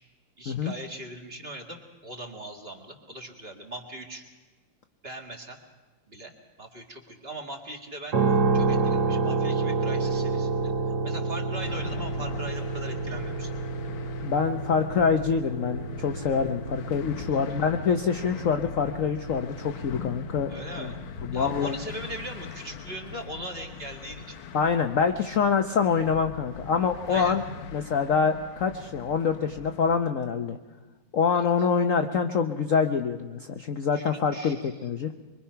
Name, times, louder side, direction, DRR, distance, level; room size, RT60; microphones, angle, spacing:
voice 1, 0.4-4.2 5.0-5.6 6.1-6.3 6.6-8.2 8.5-10.7 11.0-13.5 17.3-17.4 20.5-21.0 21.3-24.4 27.1-27.3 31.3-31.5 33.9-34.7, right 1 dB, 30° right, 2 dB, 2.2 m, -40 dB
sound 1, 8.1-22.1, right 4 dB, 50° right, 2.3 m, -29 dB
sound 2, 11.6-30.0, left 6 dB, 75° left, 1.7 m, -42 dB
voice 2, 14.2-20.5 20.8-20.9 21.2-21.8 24.5-27.4 27.7-30.6 31.1-35.1, left 6 dB, 55° left, 6 dB, 0.9 m, -25 dB
24.0 x 24.0 x 5.7 m, 1.3 s
omnidirectional pair, 2.3 m